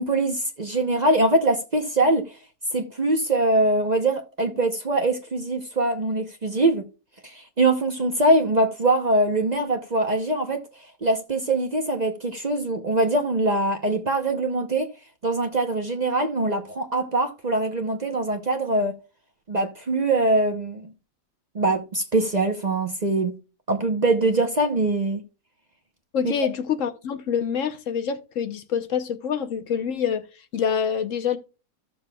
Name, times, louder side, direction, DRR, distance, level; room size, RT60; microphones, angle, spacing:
voice 1, 0.0-2.2 2.7-6.8 7.2-10.6 11.0-14.9 15.2-18.9 19.5-20.9 21.5-23.3 23.7-25.2 26.2-26.3, right 2 dB, 35° right, 0.8 m, -23 dB
voice 2, 26.1-30.2 30.5-31.4, left 7 dB, 65° left, 1.1 m, -26 dB
14.5 x 6.8 x 2.2 m
omnidirectional pair, 1.5 m